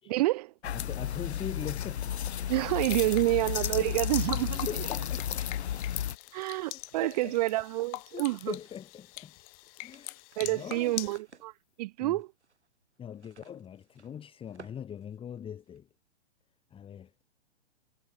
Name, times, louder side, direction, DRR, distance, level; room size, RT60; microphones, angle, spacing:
voice 1, 0.1-0.5 2.5-4.7 6.3-8.5 10.4-11.5 11.8-12.3, right 18 dB, 35° right, 0.7 m, -28 dB
sound 1, 0.6-6.2, left 10 dB, 75° left, 0.7 m, -33 dB
voice 2, 0.6-2.1 3.8-3.9 4.7-5.7 7.0-7.4 8.1-9.3 9.8-10.1 10.4-11.0 12.0-12.2 13.0-15.9 16.7-17.2, left 9 dB, 15° left, 2.2 m, -41 dB
sound 2, 2.5-11.2, left 27 dB, 35° left, 0.9 m, -44 dB
sound 3, 5.0-7.4 8.0-9.0 9.2-9.3 9.6-15.8, right 4 dB, 85° right, 5.8 m, -58 dB
figure-of-eight pair, 120°, 33 cm